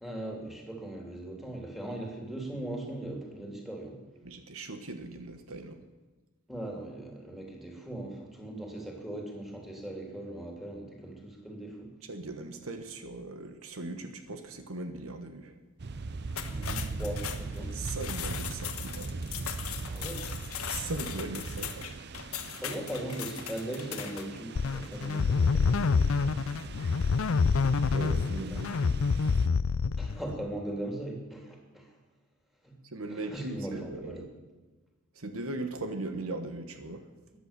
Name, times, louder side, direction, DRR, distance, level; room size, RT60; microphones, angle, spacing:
voice 1, 0.0-4.0 6.5-11.9 16.3-17.7 19.9-20.2 22.6-26.8 28.3-28.6 30.0-32.0 32.6-32.8 33.1-34.3, right 1 dB, ahead, 0 dB, 3.2 m, -39 dB
voice 2, 4.2-5.8 12.0-15.5 17.7-19.4 20.7-21.9 27.9-28.9 32.9-34.3 35.1-37.1, right 2 dB, 75° right, 7 dB, 1.4 m, -39 dB
sound 1, 15.8-29.5, right 3 dB, 50° right, 0.6 m, -40 dB
sound 2, 16.3-24.4, left 9 dB, 85° left, 1.3 m, -39 dB
sound 3, 24.6-30.4, left 5 dB, 65° left, 0.5 m, -26 dB
15.0 x 10.5 x 6.9 m, 1.3 s
head